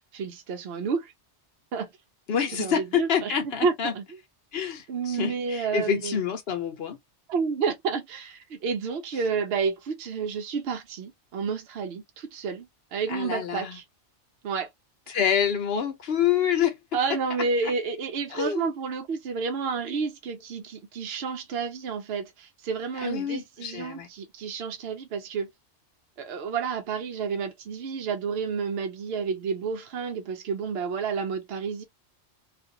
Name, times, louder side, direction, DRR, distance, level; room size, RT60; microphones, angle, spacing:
voice 1, 0.1-1.1 1.7-1.9 2.5-4.2 4.9-6.2 7.3-13.8 14.4-14.7 15.1-15.2 16.9-25.5 26.2-31.8, right 5 dB, 65° right, 0.9 m, -30 dB
voice 2, 2.3-3.9 4.5-7.0 13.1-13.8 15.1-16.8 18.3-18.7 23.0-24.1, left 8 dB, 65° left, 0.9 m, -27 dB
2.5 x 2.4 x 2.6 m
omnidirectional pair, 1.2 m